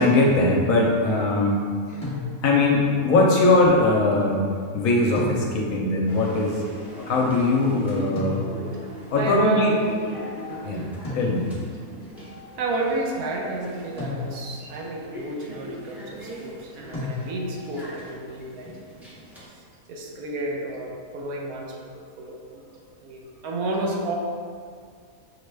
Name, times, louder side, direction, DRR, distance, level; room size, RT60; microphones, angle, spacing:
voice 1, 0.0-2.0 2.4-6.6 7.1-8.5 9.1-9.7 10.6-10.8 11.1-11.5, left 2 dB, 70° left, -1 dB, 1.0 m, -21 dB
sound 1, 2.0-2.8 5.1-5.9 8.2-8.9 11.0-11.8 14.0-14.7 16.9-17.7, left 3 dB, 35° left, 0.9 m, -33 dB
sound 2, 6.1-19.4, equal, ahead, 0.4 m, -41 dB
voice 2, 8.7-9.8 10.2-10.8 12.0-18.7 19.5-19.6 19.9-22.6 23.0-24.1, right 2 dB, 75° right, -1 dB, 1.1 m, -31 dB
6.2 x 2.2 x 3.2 m, 2.1 s
omnidirectional pair, 1.6 m